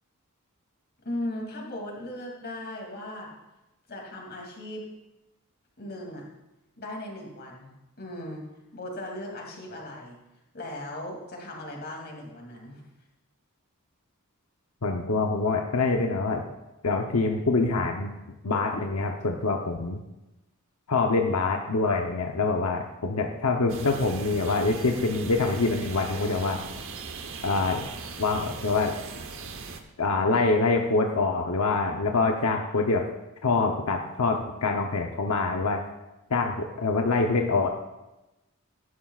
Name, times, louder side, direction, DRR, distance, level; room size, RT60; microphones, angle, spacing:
voice 1, 1.0-3.3 3.9-4.8 5.8-6.3 6.8-7.7 8.0-8.4 8.7-10.2 10.5-12.8, left 1 dB, 50° left, -1 dB, 2.7 m, -37 dB
voice 2, 14.8-16.4 16.8-18.1 18.4-20.0 20.9-26.6 27.4-27.9 28.2-28.9 30.0-33.0 33.4-35.8 36.3-37.7, left 3 dB, 90° left, 2 dB, 0.9 m, -25 dB
sound 1, 23.7-29.8, right 4 dB, 65° right, 1.0 m, -39 dB
17.0 x 11.5 x 2.4 m, 0.99 s
head